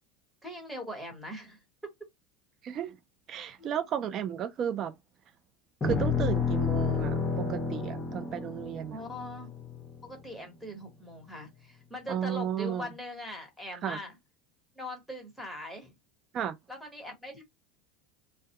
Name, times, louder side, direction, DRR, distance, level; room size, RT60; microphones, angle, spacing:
voice 1, 0.4-1.6 3.6-3.8 8.9-9.5 10.0-14.2 14.7-15.9 16.7-17.4, left 1 dB, ahead, 1.1 m, -41 dB
voice 2, 2.6-3.0 3.3-4.9 5.8-9.0 12.1-12.9 13.8-14.0 16.3-16.5, right 9 dB, 40° right, 0.5 m, -33 dB
sound 1, 5.8-10.2, left 5 dB, 25° left, 0.7 m, -30 dB
2.2 x 2.2 x 2.8 m
supercardioid pair, 115°, 0 cm